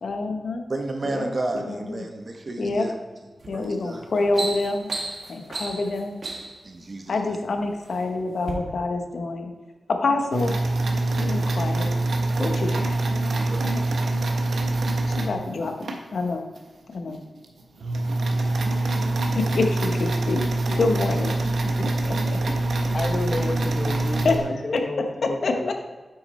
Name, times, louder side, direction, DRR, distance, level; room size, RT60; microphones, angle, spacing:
voice 1, 0.0-0.6 1.0-1.3 1.6-2.1 2.6-2.9 3.5-4.9 5.3-6.2 7.1-9.5 10.0-10.6 11.2-11.9 12.4-13.0 15.1-16.5 16.9-17.2 19.3-20.4 20.8-21.3 22.0-22.4 24.2-24.3 24.7-24.8 25.2-25.7, left 3 dB, 75° left, 5 dB, 0.9 m, -26 dB
voice 2, 0.7-3.0 3.5-4.0 6.6-7.4 12.4-12.8 13.2-13.7, right 2 dB, 40° right, 4 dB, 1.0 m, -32 dB
sound 1, 3.4-3.6 4.0-6.6 7.5-8.0 8.4-8.5, right 2 dB, 60° right, 1.4 m, -33 dB
sound 2, 10.3-16.0 16.6-16.7 17.1-17.2 17.4-24.4, right 2 dB, 80° right, 1.1 m, -24 dB
voice 3, 22.5-25.7, left 2 dB, 40° left, 6 dB, 0.9 m, -31 dB
8.7 x 6.0 x 4.2 m, 1.3 s
wide cardioid pair, 115°, 0 cm